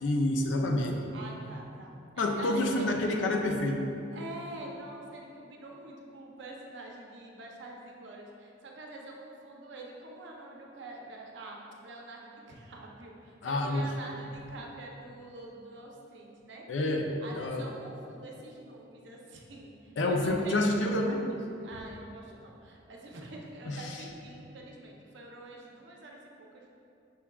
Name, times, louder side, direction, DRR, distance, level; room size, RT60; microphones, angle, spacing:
voice 1, 0.0-1.0 2.2-3.8 13.4-13.9 16.7-17.1 17.3-17.7 20.0-21.3 23.7-23.8, left 1 dB, 75° left, 3 dB, 0.4 m, -28 dB
voice 2, 1.1-3.1 4.1-16.7 17.2-26.7, right 2 dB, 65° right, -1 dB, 0.6 m, -46 dB
5.8 x 3.5 x 2.2 m, 2.6 s
head